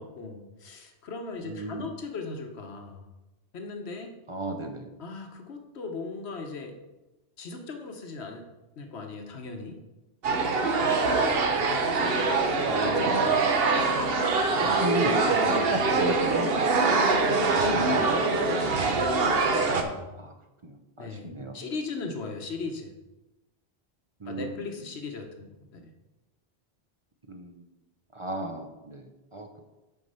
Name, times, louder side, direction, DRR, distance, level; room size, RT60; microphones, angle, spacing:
voice 1, 0.0-3.1 3.5-4.1 5.0-6.8 7.4-8.5 8.8-9.8 11.6-13.9 14.5-14.8 15.2-15.7 17.3-19.1 19.8-20.1 21.0-22.9 24.3-25.9, left 3 dB, 80° left, 4 dB, 1.2 m, -38 dB
voice 2, 1.4-1.9 4.3-4.9 10.6-11.2 12.7-13.2 14.6-16.7 17.7-18.1 19.1-19.7 20.2-20.3 20.6-21.6 24.2-24.5 27.3-27.5 28.1-29.1 29.3-29.6, right 2 dB, 35° right, 4 dB, 0.7 m, -34 dB
sound 1, 10.2-19.8, right 3 dB, 65° right, 1.0 m, -24 dB
8.2 x 4.7 x 5.5 m, 1.0 s
omnidirectional pair, 1.1 m